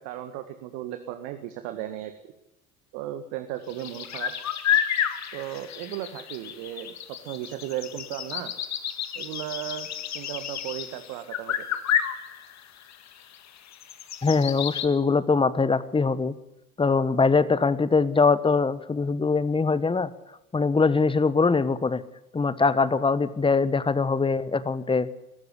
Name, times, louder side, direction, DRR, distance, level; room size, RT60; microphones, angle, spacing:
voice 1, 0.0-2.3 2.9-4.3 5.3-8.5 9.2-11.7, right 12 dB, 55° right, 8 dB, 1.9 m, -36 dB
sound 1, 3.7-14.9, left 9 dB, 40° left, 2.1 m, -30 dB
voice 2, 14.2-16.3 16.8-20.1 20.5-22.0 22.3-25.1, left 4 dB, 10° left, 16 dB, 1.2 m, -22 dB
22.0 x 13.5 x 9.8 m, 0.91 s
figure-of-eight pair, 70°, 44 cm